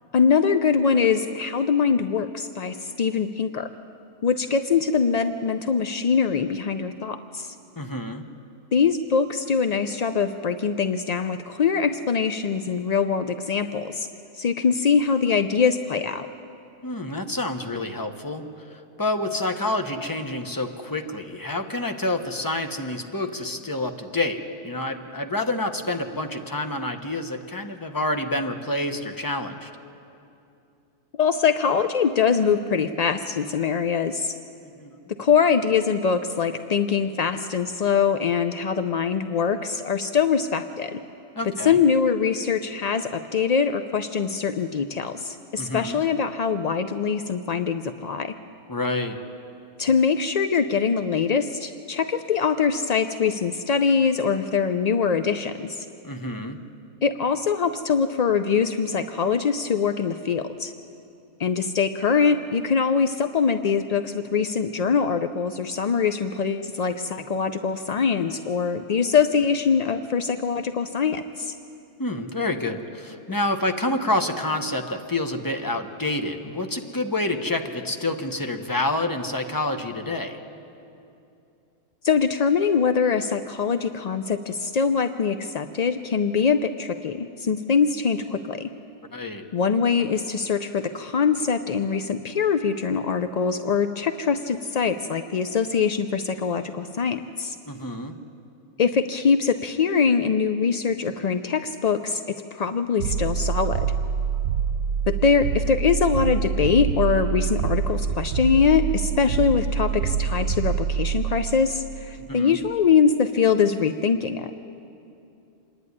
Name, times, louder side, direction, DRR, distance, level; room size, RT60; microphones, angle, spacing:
voice 1, 0.1-3.7 4.2-7.6 8.7-14.1 14.4-16.3 31.2-34.3 35.2-41.0 41.4-48.3 49.8-55.9 57.0-60.7 61.4-71.5 82.0-88.7 89.5-97.6 98.8-103.9 105.1-114.5, left 6 dB, 65° left, 9 dB, 0.4 m, -23 dB
voice 2, 7.8-8.2 16.8-29.7 34.6-35.0 41.4-41.8 45.6-46.0 48.7-49.2 56.0-56.6 72.0-80.4 89.1-89.4 97.7-98.1 112.2-112.6, left 2 dB, 15° left, 5 dB, 1.0 m, -28 dB
sound 1, 103.0-112.1, right 7 dB, 75° right, 1.2 m, -26 dB
26.0 x 11.0 x 9.6 m, 2.7 s
omnidirectional pair, 1.4 m